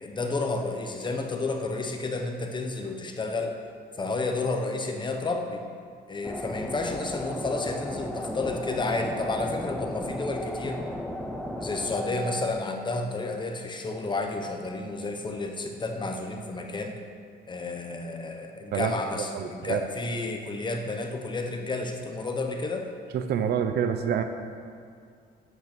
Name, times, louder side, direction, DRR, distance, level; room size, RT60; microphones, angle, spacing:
voice 1, 0.0-3.5 4.0-5.6 6.1-10.8 11.6-16.9 17.5-22.9, left 3 dB, 25° left, 3 dB, 1.0 m, -31 dB
sound 1, 6.2-12.5, equal, 5° left, 0.8 m, -35 dB
voice 2, 19.3-19.9 23.1-24.2, right 8 dB, 70° right, 8 dB, 0.7 m, -27 dB
9.2 x 8.8 x 6.0 m, 2.4 s
cardioid pair, 125°, 18 cm